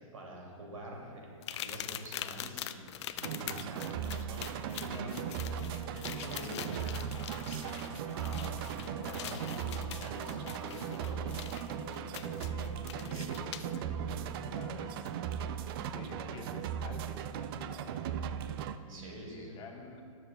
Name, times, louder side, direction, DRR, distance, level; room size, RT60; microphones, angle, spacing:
voice 1, 0.0-2.9 3.2-7.5 8.1-11.3 18.9-19.6, right 1 dB, 80° right, -1 dB, 2.5 m, -46 dB
sound 1, 1.4-13.8 15.1-15.2 15.7-15.9, left 11 dB, 55° left, 0.4 m, -44 dB
sound 2, 2.7-17.1, left 2 dB, 80° left, 1.5 m, -52 dB
sound 3, 3.2-18.8, right 8 dB, 45° right, 0.4 m, -38 dB
voice 2, 12.4-15.0 15.8-18.3 18.8-20.0, left 2 dB, 25° left, 1 dB, 1.3 m, -49 dB
19.5 x 7.2 x 2.3 m, 2.3 s
hypercardioid pair, 115°, 17 cm